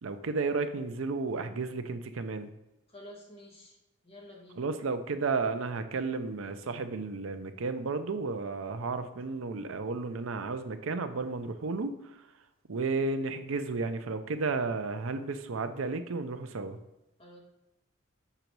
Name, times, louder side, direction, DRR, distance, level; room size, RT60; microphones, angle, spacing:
voice 1, 0.0-2.5 4.6-12.0 12.7-16.8, right 4 dB, 85° right, 9 dB, 0.6 m, -33 dB
voice 2, 2.9-3.8 4.0-4.6 17.2-17.4, left 1 dB, 30° left, -2 dB, 1.6 m, -50 dB
6.7 x 3.9 x 4.6 m, 0.96 s
head